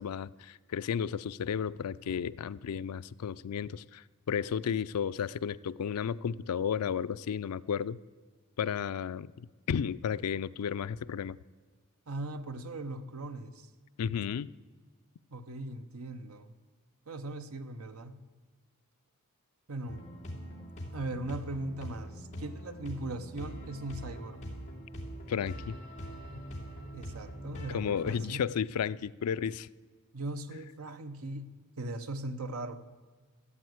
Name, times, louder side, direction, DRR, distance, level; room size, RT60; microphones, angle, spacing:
voice 1, 0.0-8.0 8.6-11.4 14.0-14.5 25.3-25.8 27.7-29.7, left 7 dB, 90° left, 0.4 m, -33 dB
voice 2, 12.1-13.7 15.3-16.5 17.1-18.2 19.7-20.1 20.9-24.5 26.9-28.5 30.1-32.8, right 2 dB, 75° right, 0.9 m, -39 dB
Invisible world - electronic music loop, 19.9-28.1, equal, 30° left, 2.5 m, -43 dB
13.5 x 8.3 x 8.0 m
head